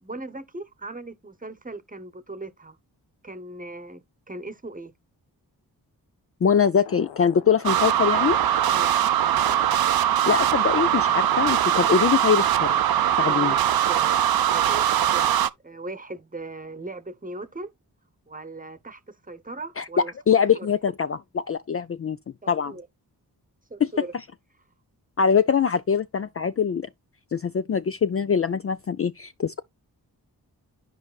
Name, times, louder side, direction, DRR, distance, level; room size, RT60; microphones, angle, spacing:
voice 1, 0.0-2.8 3.2-4.9 8.7-9.0 13.2-17.7 18.3-20.1 20.5-20.7 22.4-22.9 23.7-24.1, right 2 dB, 20° right, 1.0 m, -39 dB
voice 2, 6.4-8.4 10.3-12.8 13.2-13.5 19.8-22.2 22.5-22.7 23.8-23.9 25.2-26.9 27.3-29.6, left 7 dB, 35° left, 0.4 m, -23 dB
sound 1, 6.6-11.8, left 9 dB, 80° left, 0.7 m, -45 dB
sound 2, 7.6-15.5, right 10 dB, 60° right, 0.6 m, -21 dB
12.0 x 4.7 x 2.3 m
cardioid pair, 40°, 41 cm